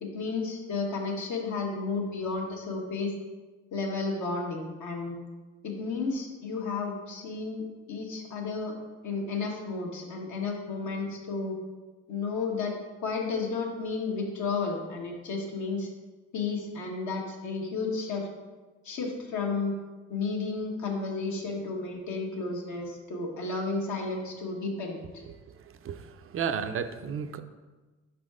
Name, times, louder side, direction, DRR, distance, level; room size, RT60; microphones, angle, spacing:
voice 1, 0.0-3.1 3.7-5.2 5.6-7.6 7.9-8.7 9.0-11.6 12.1-12.8 13.0-15.9 16.3-18.3 18.8-19.8 20.1-25.2, left 4 dB, 70° left, 0 dB, 1.4 m, -32 dB
voice 2, 25.5-27.4, right 7 dB, 45° right, 9 dB, 0.4 m, -33 dB
5.5 x 4.1 x 4.9 m, 1.3 s
cardioid pair, 90°, 30 cm